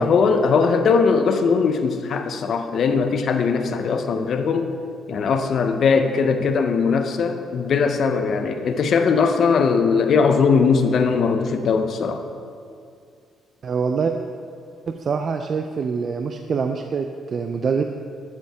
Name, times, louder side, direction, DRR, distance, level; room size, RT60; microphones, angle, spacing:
voice 1, 0.0-4.7 5.1-12.2, left 5 dB, 60° left, 7 dB, 0.6 m, -20 dB
voice 2, 13.6-14.1 15.0-17.8, right 5 dB, 50° right, 5 dB, 0.4 m, -24 dB
11.5 x 5.4 x 3.5 m, 2.3 s
cardioid pair, 90°, 0 cm